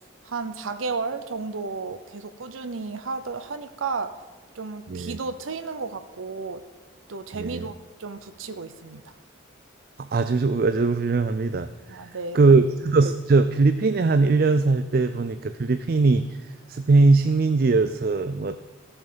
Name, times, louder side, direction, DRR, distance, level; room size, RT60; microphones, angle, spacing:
voice 1, 0.2-4.1 4.5-6.6 7.1-9.0 11.9-12.6, right 4 dB, 85° right, 9 dB, 0.7 m, -33 dB
voice 2, 10.1-11.7 12.3-16.2 16.7-18.6, right 3 dB, 50° right, 10 dB, 0.4 m, -20 dB
14.5 x 7.1 x 5.1 m, 1.4 s
head